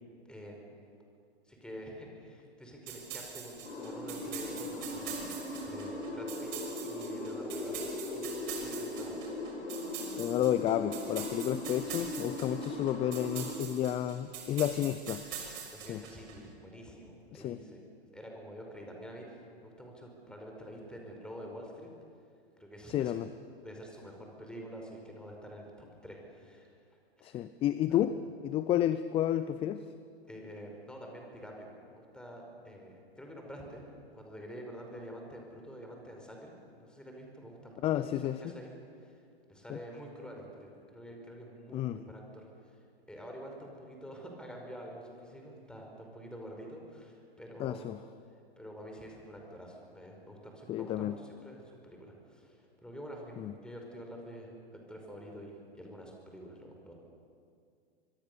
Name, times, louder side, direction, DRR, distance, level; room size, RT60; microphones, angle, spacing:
voice 1, 0.2-0.8 1.4-6.5 6.8-9.2 15.7-17.9 18.1-21.9 22.6-23.2 23.6-27.5 27.9-28.0 30.2-33.8 34.1-36.5 36.8-39.2 39.5-42.8 43.1-47.9 48.6-54.5 54.9-56.9, equal, 5° left, 1 dB, 5.1 m, -47 dB
sound 1, 2.9-16.3, right 8 dB, 45° right, 5.9 m, -44 dB
sound 2, 3.6-13.6, left 1 dB, 70° left, 5.4 m, -39 dB
voice 2, 10.2-15.2 15.9-16.0 17.3-17.6 22.9-23.3 27.2-28.2 28.4-29.9 37.8-38.4 39.7-39.8 41.7-42.0 47.6-48.0 50.7-51.2 53.4-53.5, left 11 dB, 20° left, 13 dB, 0.5 m, -31 dB
24.5 x 24.0 x 6.9 m, 2.3 s
hypercardioid pair, 110°, 32 cm